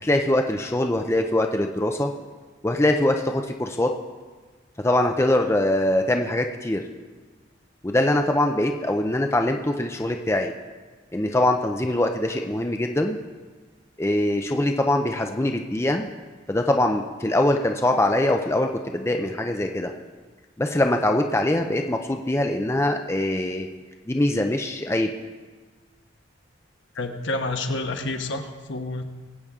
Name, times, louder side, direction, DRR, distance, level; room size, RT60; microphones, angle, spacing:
voice 1, 0.0-2.1 2.6-3.9 4.8-6.8 7.8-10.5 11.1-13.2 14.0-16.1 16.5-19.9 20.6-23.7 24.1-25.1, left 1 dB, 15° left, 4 dB, 0.5 m, -23 dB
voice 2, 26.9-29.0, left 2 dB, 65° left, 5 dB, 1.1 m, -29 dB
21.0 x 8.4 x 3.6 m, 1.4 s
head